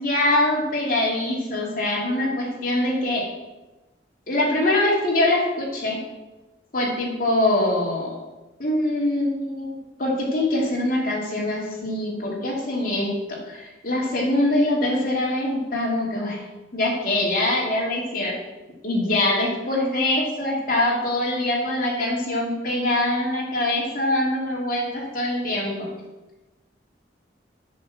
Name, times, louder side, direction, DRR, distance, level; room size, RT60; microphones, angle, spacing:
voice 1, 0.0-3.3 4.3-6.0 6.7-8.2 8.6-16.4 16.7-18.3 18.8-25.9, left 1 dB, 50° left, -4 dB, 2.9 m, -23 dB
8.6 x 5.5 x 7.4 m, 1.1 s
head